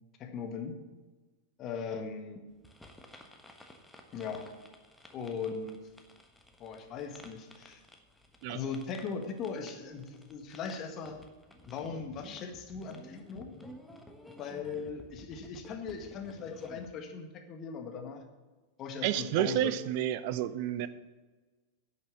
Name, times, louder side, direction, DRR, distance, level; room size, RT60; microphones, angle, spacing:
voice 1, 0.2-0.8 1.6-2.5 4.1-4.5 5.1-5.8 6.6-7.8 8.5-11.2 11.6-13.5 14.4-18.2 18.8-19.7, left 5 dB, 35° left, 4 dB, 1.7 m, -39 dB
sound 1, 2.6-16.9, left 1 dB, 5° left, 1.3 m, -54 dB
voice 2, 19.0-20.9, right 12 dB, 45° right, 15 dB, 0.6 m, -30 dB
11.0 x 6.6 x 7.0 m, 1.3 s
figure-of-eight pair, 90°, 0 cm